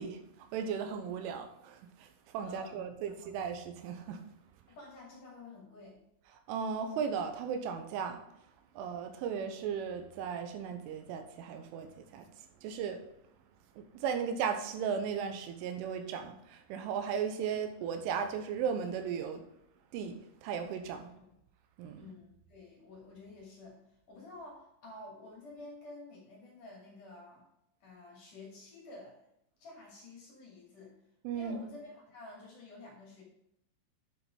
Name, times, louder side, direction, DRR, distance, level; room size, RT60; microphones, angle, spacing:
voice 1, 0.0-4.2 6.3-8.2 8.8-12.3 12.6-13.0 13.8-19.4 19.9-21.1 21.8-22.1 31.2-31.6, right 7 dB, 90° right, 3.5 m, -36 dB
voice 2, 2.4-3.3 4.7-6.0 21.9-27.4 27.8-29.3 29.6-30.9 31.3-33.2, left 2 dB, 50° left, 3.7 m, -50 dB
10.0 x 5.3 x 5.3 m
omnidirectional pair, 5.5 m